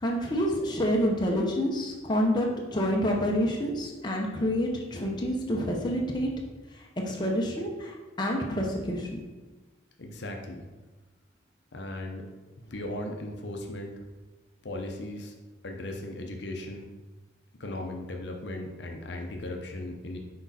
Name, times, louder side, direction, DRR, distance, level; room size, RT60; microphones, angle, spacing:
voice 1, 0.0-6.3 7.1-9.2, equal, 25° left, -1 dB, 0.8 m, -28 dB
voice 2, 10.0-10.6 11.7-12.3 12.7-14.0 14.6-15.3 15.6-16.9 17.6-20.2, left 1 dB, 65° left, 2 dB, 0.7 m, -37 dB
6.1 x 4.7 x 4.2 m, 1.2 s
head